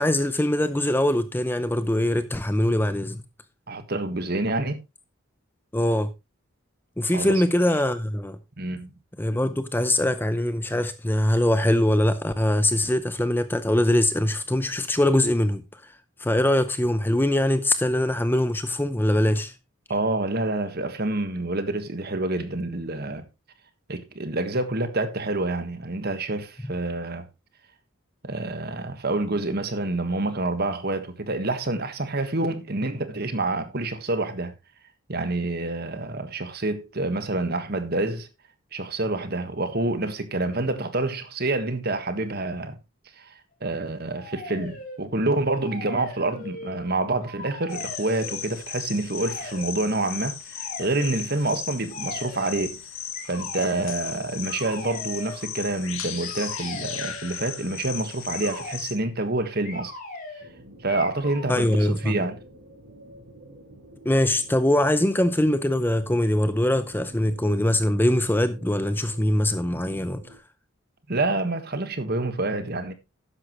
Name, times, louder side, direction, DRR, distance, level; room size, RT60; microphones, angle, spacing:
voice 1, 0.0-3.2 5.7-6.1 7.0-8.4 9.2-15.6 16.2-19.5 61.5-62.2 64.0-70.2, left 1 dB, 10° left, 0.6 m, -22 dB
voice 2, 3.7-4.8 7.1-7.4 8.6-8.9 19.9-23.3 23.9-27.2 28.2-34.5 35.1-38.3 38.7-42.8 43.2-43.3 43.6-52.8 53.2-59.9 60.8-62.4 71.1-72.9, right 2 dB, 45° right, 1.5 m, -27 dB
sound 1, 44.1-45.0 45.4-46.9 47.2-48.5 49.2-49.7 50.5-51.2 51.9-52.6 53.1-53.9 54.4-55.4 56.2-57.4 58.3-58.8 59.6-60.5 60.9-61.5, left 2 dB, 40° left, 4.7 m, -39 dB
sound 2, 47.7-58.9, left 8 dB, 70° left, 2.0 m, -36 dB
sound 3, 60.4-70.4, right 1 dB, 65° right, 3.6 m, -49 dB
12.5 x 9.8 x 3.1 m
head